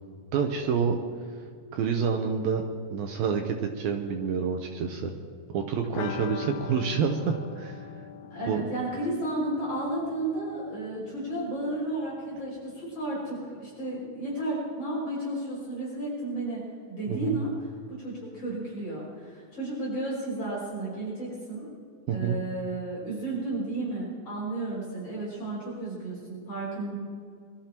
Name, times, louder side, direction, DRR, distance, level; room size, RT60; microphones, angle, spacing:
voice 1, 0.3-1.0 1.7-2.6 2.9-5.1 5.5-7.9 8.5-8.6 17.1-17.4 22.1-22.4, right 6 dB, 75° right, 4 dB, 2.2 m, -28 dB
sound 1, 5.9-11.5 11.8-11.9 12.2-12.3, left 9 dB, 80° left, 3.0 m, -42 dB
voice 2, 8.3-16.6 16.9-17.5 18.0-21.7 22.1-26.9, right 2 dB, 35° left, -6 dB, 6.2 m, -33 dB
23.0 x 13.5 x 4.5 m, 2.2 s
omnidirectional pair, 5.3 m